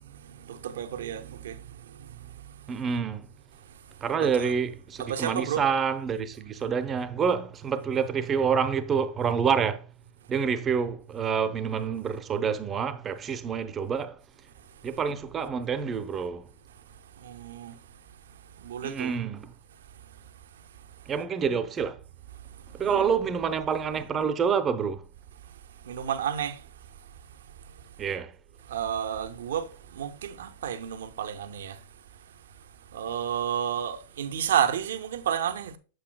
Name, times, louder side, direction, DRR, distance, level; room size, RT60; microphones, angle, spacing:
voice 1, 0.2-2.8 4.2-4.5 5.0-5.7 17.2-17.8 18.6-19.1 22.8-23.0 25.9-26.6 28.7-31.8 32.9-35.8, right 9 dB, 75° right, 0.7 m, -31 dB
voice 2, 2.7-3.3 4.0-9.9 10.3-14.2 14.8-16.5 18.8-19.5 21.1-22.0 22.7-25.1 28.0-28.3, right 6 dB, 25° right, 0.7 m, -27 dB
8.2 x 7.7 x 2.3 m
hypercardioid pair, 105°, 0 cm